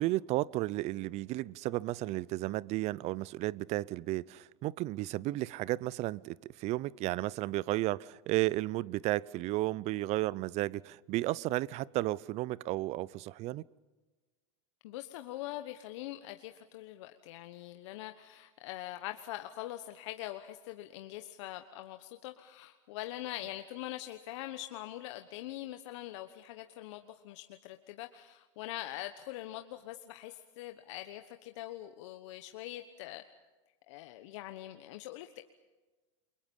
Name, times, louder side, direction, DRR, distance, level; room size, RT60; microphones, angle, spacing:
voice 1, 0.0-13.6, right 17 dB, 45° right, 23 dB, 0.6 m, -33 dB
voice 2, 14.8-33.2 33.9-35.4, left 15 dB, 65° left, 7 dB, 1.2 m, -43 dB
29.5 x 23.5 x 5.5 m, 1.3 s
hypercardioid pair, 110°, 16 cm